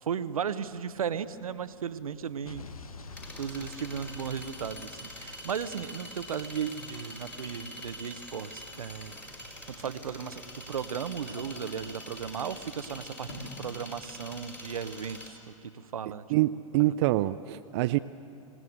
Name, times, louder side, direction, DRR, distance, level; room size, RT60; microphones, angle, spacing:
voice 1, 0.0-2.6 3.4-9.2 9.7-15.4 15.9-16.3, right 7 dB, 80° right, 13 dB, 1.0 m, -35 dB
sound 1, 0.7-15.3, left 1 dB, 10° left, 4.6 m, -45 dB
sound 2, 1.7-14.1, left 1 dB, 70° left, 4.8 m, -53 dB
Explosion, 2.5-6.5, left 3 dB, 90° left, 1.1 m, -47 dB
voice 2, 16.3-18.0, right 16 dB, 50° right, 11 dB, 0.5 m, -25 dB
25.5 x 18.5 x 8.0 m, 2.7 s
hypercardioid pair, 105°, 18 cm